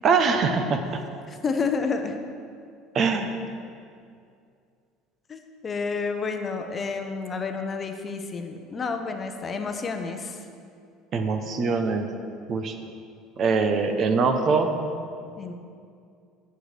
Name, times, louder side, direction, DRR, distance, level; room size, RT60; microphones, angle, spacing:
voice 1, 0.0-1.0 2.9-3.3 11.1-12.1 12.5-12.8 13.4-14.8, right 4 dB, 45° right, 7 dB, 0.8 m, -23 dB
voice 2, 1.3-2.1 5.3-10.4 15.4-15.5, left 4 dB, 30° left, 5 dB, 0.7 m, -30 dB
15.0 x 6.7 x 3.3 m, 2.4 s
supercardioid pair, 115°, 0 cm